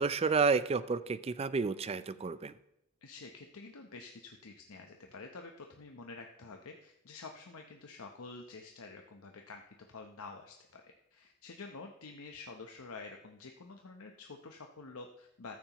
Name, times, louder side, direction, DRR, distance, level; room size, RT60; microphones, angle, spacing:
voice 1, 0.0-2.5, right 4 dB, 30° right, 15 dB, 0.4 m, -30 dB
voice 2, 3.0-9.6 9.9-15.6, left 3 dB, 85° left, 3 dB, 0.8 m, -49 dB
14.5 x 13.0 x 3.0 m, 0.84 s
head